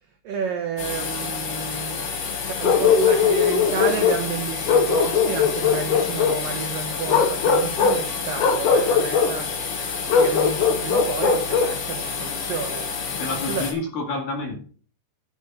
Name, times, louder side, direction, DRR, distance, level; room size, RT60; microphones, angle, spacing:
voice 1, 0.2-9.7 10.0-13.7, right 6 dB, 85° right, 1.9 m, -31 dB
sound 1, 0.8-13.7, left 5 dB, 65° left, 4.5 m, -30 dB
Bark, 2.6-4.2 4.7-6.4 7.1-8.0 8.4-9.3 10.1-11.8, left 5 dB, 85° left, 1.8 m, -20 dB
voice 2, 13.2-14.6, left 3 dB, 50° left, 3.3 m, -28 dB
11.5 x 6.7 x 5.7 m
omnidirectional pair, 5.6 m